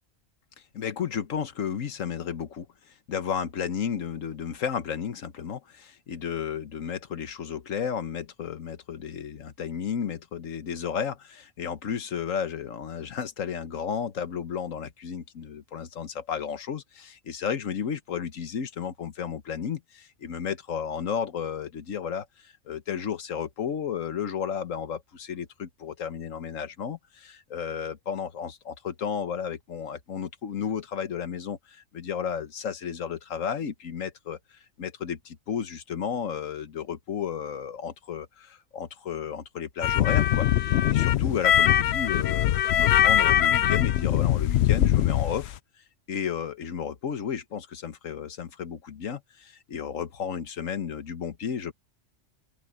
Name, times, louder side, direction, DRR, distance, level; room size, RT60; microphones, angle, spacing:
voice 1, 0.7-45.6 46.1-51.7, left 7 dB, 85° left, 1.5 m, -33 dB
sound 1, 39.8-45.5, left 11 dB, 65° left, 0.8 m, -22 dB
open air
omnidirectional pair, 1.3 m